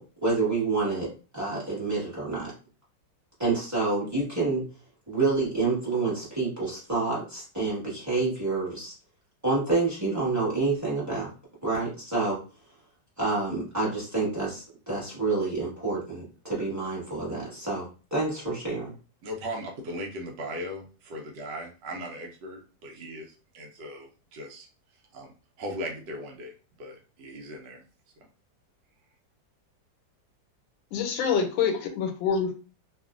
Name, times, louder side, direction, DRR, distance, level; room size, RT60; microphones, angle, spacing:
voice 1, 0.0-2.5 3.4-4.6 5.1-8.9 9.4-11.3 11.6-12.4 13.2-18.9, right 3 dB, 10° right, 1.1 m, -28 dB
voice 2, 19.2-24.7 25.1-25.3 25.6-26.5 26.8-27.8, equal, 75° right, 1.2 m, -38 dB
voice 3, 30.9-32.5, left 6 dB, 85° left, 1.3 m, -26 dB
3.0 x 2.5 x 2.4 m
omnidirectional pair, 2.0 m